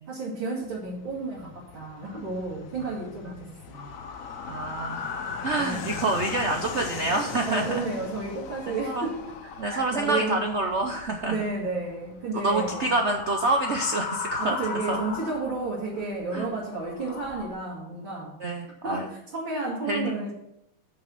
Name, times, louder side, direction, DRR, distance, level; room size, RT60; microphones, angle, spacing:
voice 1, 0.1-3.9 5.5-5.9 7.4-9.3 9.6-10.4 11.3-12.9 14.4-18.4 18.8-20.3, right 3 dB, 70° right, -7 dB, 3.0 m, -32 dB
Fixed-wing aircraft airplane, 0.6-16.8, left 7 dB, 75° left, 0.7 m, -43 dB
sound 1, 3.7-7.2 7.5-11.5 12.4-16.0 16.5-17.5, left 5 dB, 60° left, 1.5 m, -38 dB
voice 2, 4.5-5.1 5.4-7.8 8.8-9.1 9.6-11.4 12.3-14.6 14.9-15.0 16.3-16.5 18.4-19.1 19.9-20.2, right 2 dB, 90° right, 4 dB, 0.6 m, -27 dB
6.6 x 6.6 x 7.5 m, 0.80 s
omnidirectional pair, 2.3 m